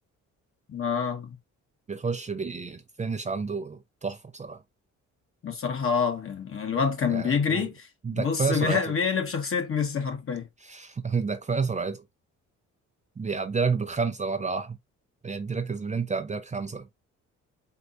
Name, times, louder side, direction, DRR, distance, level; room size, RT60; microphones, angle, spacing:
voice 1, 0.7-1.4 5.4-7.9 8.1-10.5, left 6 dB, 45° left, 1.5 m, -27 dB
voice 2, 1.9-4.6 7.1-7.7 8.0-8.8 10.6-12.0 13.2-14.8 15.2-16.9, right 5 dB, 25° right, 0.6 m, -30 dB
4.6 x 3.8 x 2.6 m
cardioid pair, 90°, 30 cm